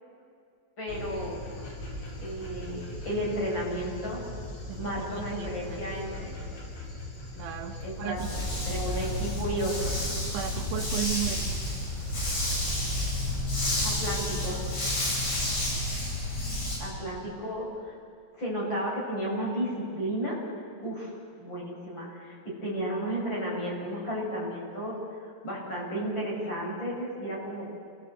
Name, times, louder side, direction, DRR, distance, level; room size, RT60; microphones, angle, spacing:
voice 1, 0.8-1.4 2.2-4.2 4.7-6.4 7.8-10.0 13.8-14.6 16.8-17.9 18.3-20.4 20.8-25.0 25.4-27.7, equal, 20° left, -4 dB, 7.8 m, -33 dB
Dog, 0.9-14.3, left 1 dB, 80° left, 7.8 m, -40 dB
voice 2, 4.7-5.9 7.3-8.3 10.3-11.8, right 12 dB, 75° right, 3 dB, 3.4 m, -36 dB
Dog 2, 8.2-16.8, left 1 dB, 60° left, 9.8 m, -30 dB
30.0 x 19.0 x 8.3 m, 2.3 s
omnidirectional pair, 5.7 m